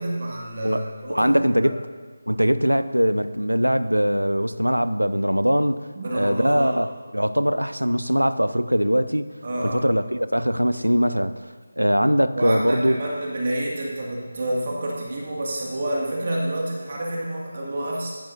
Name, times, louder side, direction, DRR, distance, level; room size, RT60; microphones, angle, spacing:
voice 1, 0.0-1.3 1.6-1.7 5.9-6.8 9.4-9.8 12.3-18.1, right 1 dB, 40° right, -3 dB, 2.0 m, -28 dB
voice 2, 1.1-1.8 2.3-5.9 6.1-9.3 9.6-11.5 11.8-13.0, equal, 90° right, 13 dB, 0.6 m, -21 dB
15.5 x 12.0 x 2.7 m, 1.5 s
figure-of-eight pair, 160°, 0 cm